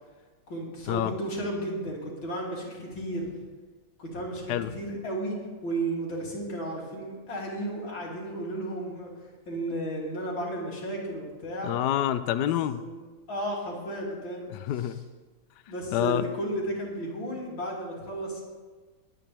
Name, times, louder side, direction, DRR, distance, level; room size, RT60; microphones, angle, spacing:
voice 1, 0.5-3.4 4.0-5.4 5.6-11.7 12.8-13.0 13.3-15.0 15.7-18.4, right 1 dB, 90° left, -3 dB, 3.7 m, -34 dB
voice 2, 11.6-12.8 14.5-15.0 15.9-16.3, left 11 dB, 70° left, 11 dB, 1.1 m, -27 dB
22.0 x 9.1 x 3.4 m, 1.3 s
omnidirectional pair, 2.1 m